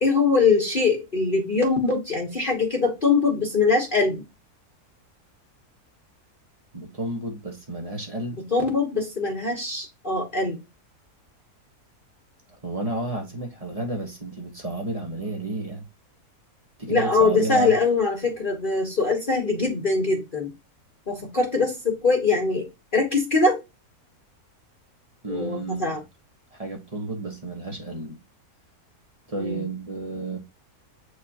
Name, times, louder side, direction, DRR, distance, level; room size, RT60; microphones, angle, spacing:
voice 1, 0.0-4.2 8.5-10.6 16.9-20.5 21.1-23.6 25.3-26.0 29.4-29.7, left 4 dB, 35° left, 1.3 m, -22 dB
voice 2, 6.7-8.4 12.6-15.8 16.8-17.7 25.2-26.0 26.5-28.2 29.3-30.4, right 2 dB, 25° right, 1.3 m, -31 dB
8.0 x 4.8 x 2.9 m
omnidirectional pair, 1.6 m